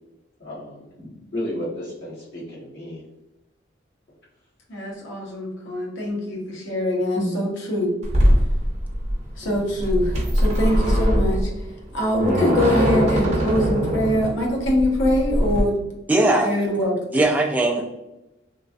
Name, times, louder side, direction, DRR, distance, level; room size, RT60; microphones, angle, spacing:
voice 1, 0.4-1.1 1.3-3.0, left 1 dB, 55° left, -6 dB, 1.2 m, -32 dB
voice 2, 4.7-8.0 9.4-11.5 11.9-15.8 16.4-16.9, left 1 dB, 80° left, -1 dB, 0.8 m, -23 dB
sound 1, 8.0-15.6, equal, 35° right, 0.8 m, -21 dB
voice 3, 16.1-16.6 17.1-17.8, right 2 dB, 10° right, 0 dB, 0.3 m, -20 dB
3.1 x 2.3 x 2.4 m, 0.96 s
head